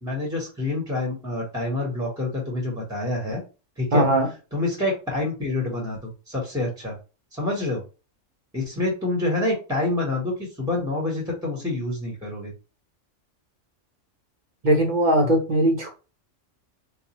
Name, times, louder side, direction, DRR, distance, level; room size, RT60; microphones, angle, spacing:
voice 1, 0.0-3.4 3.8-4.0 4.5-6.9 7.3-7.8 8.5-12.5, left 2 dB, 5° right, 1.0 m, -27 dB
voice 2, 3.9-4.3 14.6-15.9, right 1 dB, 40° right, 1.0 m, -19 dB
4.0 x 2.4 x 2.9 m
omnidirectional pair, 1.3 m